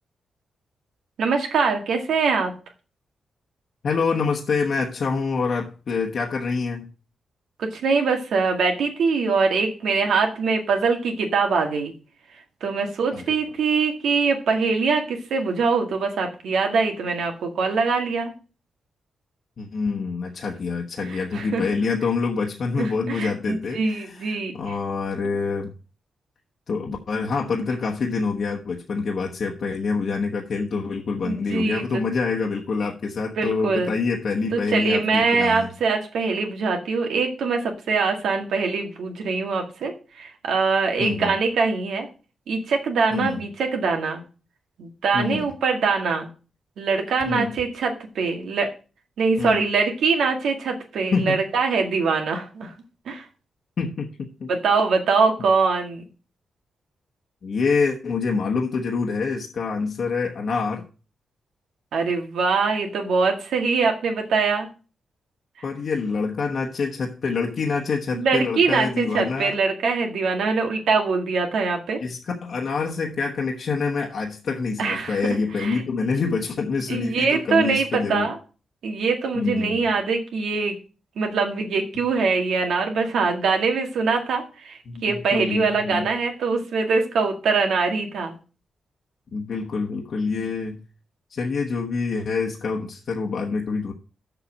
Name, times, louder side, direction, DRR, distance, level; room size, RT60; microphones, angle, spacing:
voice 1, 1.2-2.5 7.6-11.9 12.6-18.3 21.1-21.7 22.8-24.7 31.2-32.0 33.4-33.9 34.5-42.1 42.5-44.2 44.8-46.3 46.8-48.7 49.2-52.7 53.1-53.3 54.5-56.0 61.9-64.7 68.1-72.0 74.8-75.2 75.6-75.8 76.9-78.4 78.8-80.8 81.2-88.3, right 4 dB, 90° right, 3 dB, 1.9 m, -23 dB
voice 2, 3.8-6.9 13.1-13.2 19.6-25.7 26.7-35.7 41.0-41.3 43.1-43.4 45.1-45.5 47.3-47.6 49.4-49.6 51.1-51.4 53.8-54.5 57.4-60.8 65.6-69.5 72.0-78.3 79.3-79.8 84.9-86.1 89.3-90.8 91.3-93.9, left 4 dB, 55° left, 1 dB, 1.1 m, -26 dB
7.0 x 5.8 x 7.1 m, 0.36 s
wide cardioid pair, 130°, 0 cm